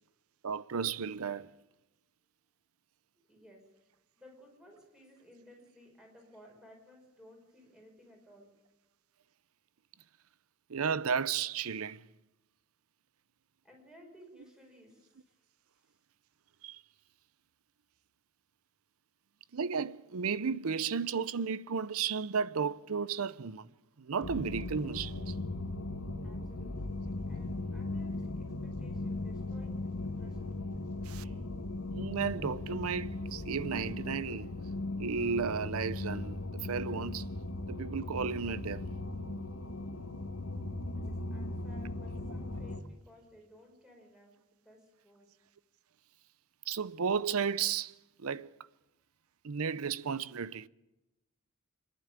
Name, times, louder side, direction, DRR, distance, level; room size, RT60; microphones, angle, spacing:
voice 1, 0.4-1.5 10.7-12.0 16.6-16.8 19.5-23.7 24.0-25.3 31.1-31.3 31.9-34.5 35.0-37.2 37.7-38.9 46.7-47.9 48.2-48.5 49.4-50.7, right 6 dB, 75° right, 0.6 m, -33 dB
voice 2, 3.3-3.6 4.2-8.5 13.6-15.3 26.2-29.7 30.2-30.7 40.8-45.3, equal, 5° right, 5.2 m, -58 dB
sound 1, 24.2-42.8, left 2 dB, 75° left, 1.3 m, -38 dB
26.5 x 11.0 x 8.8 m
head